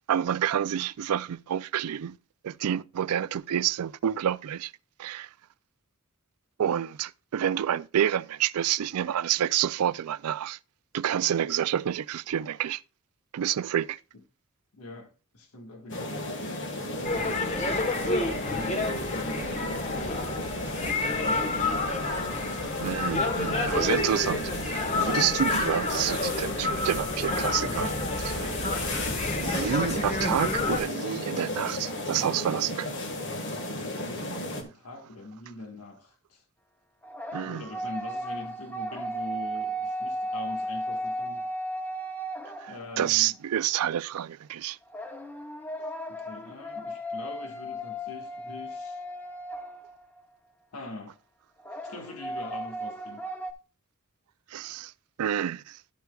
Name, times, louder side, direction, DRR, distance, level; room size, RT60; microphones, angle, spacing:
voice 1, 0.1-2.2 2.4-4.7 5.0-5.3 6.6-10.6 10.9-12.8 13.3-14.0 22.8-27.9 28.2-28.5 29.4-33.0 37.3-37.6 42.6-44.8 54.5-54.9 55.2-55.8, right 10 dB, 85° right, 0.4 m, -28 dB
voice 2, 14.7-16.1 16.8-18.8 19.1-20.1 21.0-21.8 34.1-36.4 37.4-41.5 42.7-43.3 46.1-49.0 50.7-51.2 51.8-53.2, left 2 dB, 90° left, 1.6 m, -43 dB
sound 1, 15.9-34.6, left 1 dB, 55° left, 1.6 m, -34 dB
sound 2, 17.0-30.8, left 2 dB, 30° left, 1.2 m, -30 dB
sound 3, 37.0-43.1 44.9-50.2 51.6-53.5, right 1 dB, 10° left, 0.7 m, -35 dB
11.5 x 8.1 x 2.3 m
head